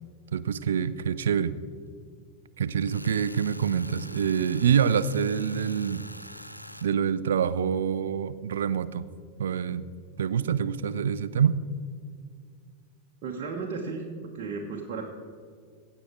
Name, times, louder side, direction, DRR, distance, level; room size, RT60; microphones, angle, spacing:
voice 1, 0.3-1.6 2.6-6.0 6.8-9.1 9.4-9.9 10.2-11.6, right 7 dB, 65° right, 16 dB, 0.5 m, -26 dB
Tools, 2.8-6.9, equal, 90° left, 0.5 m, -44 dB
voice 2, 13.2-14.0 14.3-15.0, right 4 dB, 45° right, -1 dB, 1.2 m, -34 dB
17.0 x 8.0 x 4.5 m, 2.2 s
figure-of-eight pair, 90°, 0 cm